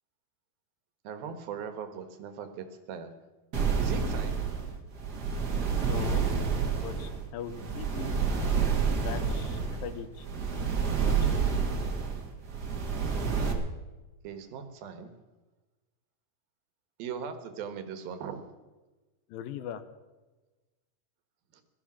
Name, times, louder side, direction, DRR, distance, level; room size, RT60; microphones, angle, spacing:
voice 1, 1.0-3.1 3.8-4.5 14.2-15.1 17.0-18.4 21.5-21.6, right 7 dB, 80° right, 9 dB, 3.1 m, -39 dB
sound 1, 3.5-13.5, right 6 dB, 40° right, 1.5 m, -29 dB
voice 2, 5.8-6.3 6.8-8.2 8.9-10.3 10.9-11.5 19.3-19.8, left 9 dB, 75° left, 11 dB, 2.5 m, -40 dB
17.0 x 13.0 x 6.1 m, 1.2 s
omnidirectional pair, 4.3 m